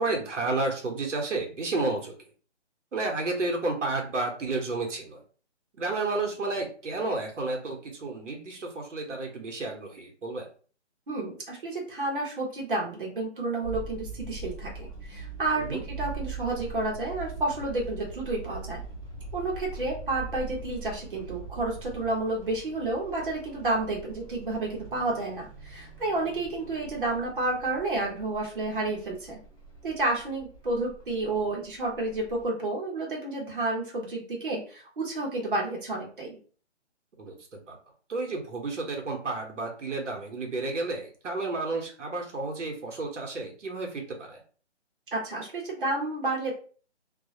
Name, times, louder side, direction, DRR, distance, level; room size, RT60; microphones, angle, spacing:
voice 1, 0.0-2.2 2.9-5.2 5.8-10.5 15.6-15.8 37.2-37.8 38.1-44.4, right 3 dB, 90° right, 2 dB, 0.9 m, -31 dB
voice 2, 11.1-18.8 19.3-29.4 29.8-36.4 45.1-46.5, right 2 dB, 45° right, -2 dB, 0.8 m, -30 dB
sound 1, 13.6-32.4, right 4 dB, 30° left, 0.6 m, -42 dB
2.3 x 2.0 x 2.7 m, 0.41 s
hypercardioid pair, 180°, 36 cm